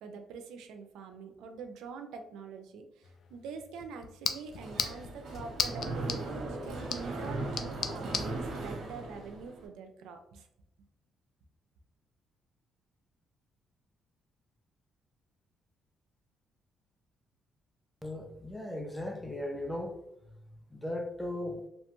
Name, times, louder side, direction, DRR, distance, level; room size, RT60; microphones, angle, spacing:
voice 1, 0.0-10.5, right 5 dB, 90° right, 5 dB, 0.3 m, -45 dB
sound 1, 3.0-8.3, left 6 dB, 60° left, 0.3 m, -38 dB
Mechanisms, 4.5-9.7, right 2 dB, 70° right, 0.8 m, -38 dB
voice 2, 18.0-20.0 20.7-21.6, left 1 dB, 5° left, 3 dB, 0.5 m, -37 dB
2.8 x 2.1 x 2.9 m, 0.82 s
cardioid pair, 90°, 0 cm